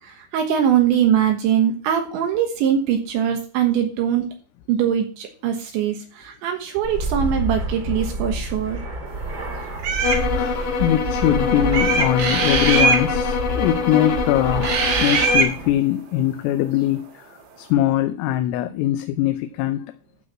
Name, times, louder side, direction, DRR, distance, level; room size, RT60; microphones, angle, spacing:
voice 1, 0.0-4.3 4.7-8.8, right 9 dB, 70° right, 3.4 m, -22 dB
Fixed-wing aircraft airplane, 6.8-15.7, right 1 dB, 30° right, 1.8 m, -29 dB
sound 1, 9.8-10.2 11.7-13.0 14.6-15.5, right 5 dB, 85° right, 5.5 m, -20 dB
sound 2, 10.0-15.5, left 5 dB, 70° left, 1.7 m, -24 dB
voice 2, 10.3-14.7 15.0-17.2 17.6-19.9, left 12 dB, 90° left, 3.4 m, -22 dB
12.0 x 4.8 x 7.4 m
omnidirectional pair, 5.8 m